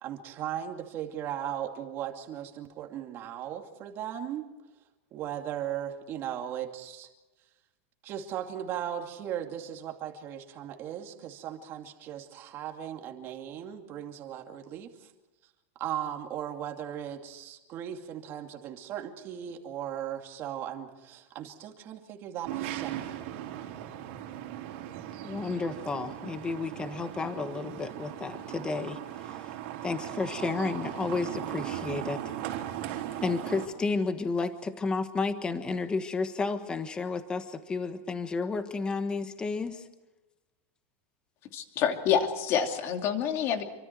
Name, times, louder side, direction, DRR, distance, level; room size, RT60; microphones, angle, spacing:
voice 1, 0.0-4.5 5.1-7.1 8.0-15.1 15.8-23.1, right 10 dB, 35° right, 3 dB, 2.5 m, -37 dB
sound 1, 22.4-33.7, right 12 dB, 60° right, 3.7 m, -38 dB
voice 2, 25.2-29.4 29.8-32.2 33.2-39.8, left 4 dB, 10° left, 9 dB, 1.4 m, -32 dB
voice 3, 41.5-43.6, left 8 dB, 35° left, 5 dB, 2.7 m, -27 dB
28.0 x 25.0 x 4.7 m, 1.1 s
supercardioid pair, 160°, 7 cm